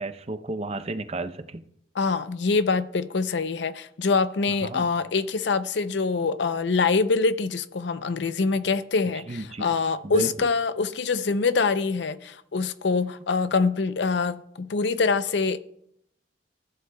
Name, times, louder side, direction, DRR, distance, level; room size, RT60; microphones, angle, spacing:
voice 1, 0.0-1.6 4.6-4.9 9.3-9.7 10.0-10.3, right 2 dB, 35° right, 0.6 m, -32 dB
voice 2, 1.9-15.6, left 4 dB, 65° left, 0.5 m, -25 dB
15.5 x 11.0 x 2.3 m
head